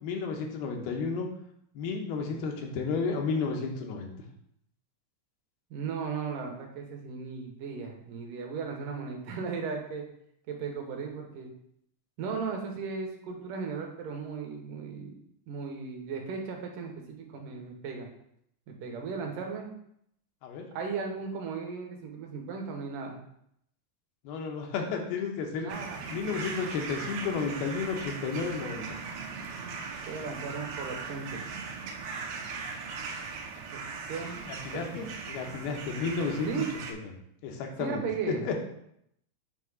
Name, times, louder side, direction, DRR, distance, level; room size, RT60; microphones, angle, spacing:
voice 1, 0.0-1.3 1.8-4.1 20.4-20.7 24.2-25.7 26.1-28.8 34.5-36.8 37.4-38.5, left 5 dB, 80° left, 1 dB, 2.7 m, -32 dB
voice 2, 5.7-10.0 10.5-11.5 12.2-15.2 15.5-18.1 18.7-19.7 20.7-23.2 25.6-26.0 30.1-31.4 33.7-33.8 34.1-34.4 34.7-34.9 36.5-36.7 37.8-38.4, right 5 dB, 70° right, 1 dB, 2.3 m, -36 dB
sound 1, 25.7-36.9, right 5 dB, 90° right, 2.7 m, -39 dB
8.2 x 2.9 x 4.8 m, 0.73 s
omnidirectional pair, 4.4 m